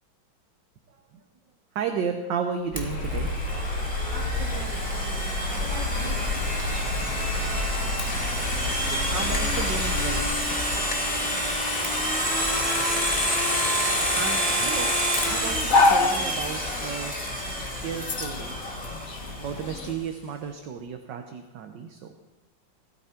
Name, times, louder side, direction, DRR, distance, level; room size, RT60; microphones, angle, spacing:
voice 1, 1.7-3.3 8.9-10.2 14.1-14.9 15.2-17.1 17.8-18.6 19.4-22.1, right 6 dB, 65° right, 5 dB, 1.6 m, -33 dB
sound 1, 2.7-10.2, left 2 dB, 80° left, 5.4 m, -30 dB
Domestic sounds home sounds, 2.8-19.5, equal, 5° left, 2.1 m, -28 dB
voice 2, 4.1-6.2, right 2 dB, 30° right, -3 dB, 3.4 m, -41 dB
sound 2, 5.7-19.9, left 3 dB, 45° left, 1.6 m, -31 dB
18.0 x 13.0 x 4.5 m, 1.1 s
omnidirectional pair, 2.2 m